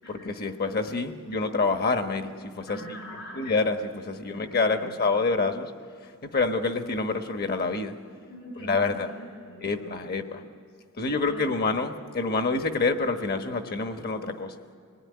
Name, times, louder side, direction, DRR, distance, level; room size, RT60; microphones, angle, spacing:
voice 1, 0.1-3.0 3.4-5.7 6.2-7.9 8.6-9.1 9.6-10.4 11.0-14.5, left 3 dB, 45° left, 7 dB, 1.2 m, -27 dB
voice 2, 2.7-3.4 4.3-4.9 8.3-10.2 11.0-11.5, equal, 70° left, -1 dB, 5.9 m, -42 dB
25.5 x 19.0 x 9.6 m, 2.3 s
head